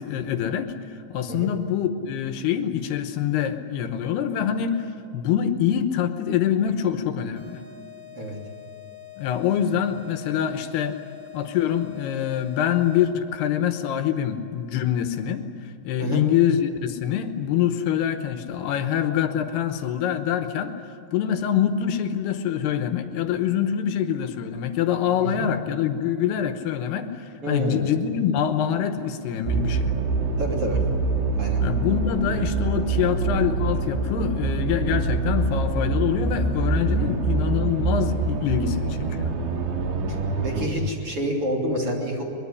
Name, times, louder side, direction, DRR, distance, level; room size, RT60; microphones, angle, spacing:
voice 1, 0.0-7.6 9.2-11.0 11.3-20.7 21.1-29.9 31.6-39.3, left 9 dB, 75° left, 8 dB, 3.0 m, -25 dB
sound 1, 7.4-13.3, left 12 dB, 65° right, 5.7 m, -44 dB
voice 2, 25.2-25.5 27.4-27.8 30.4-30.8 31.3-31.6 37.0-37.2 40.1-40.2 40.4-42.2, right 1 dB, 35° right, 0 dB, 3.6 m, -28 dB
sound 2, 29.5-40.7, right 3 dB, 80° right, 4.3 m, -25 dB
23.0 x 22.0 x 9.9 m, 2.7 s
omnidirectional pair, 4.9 m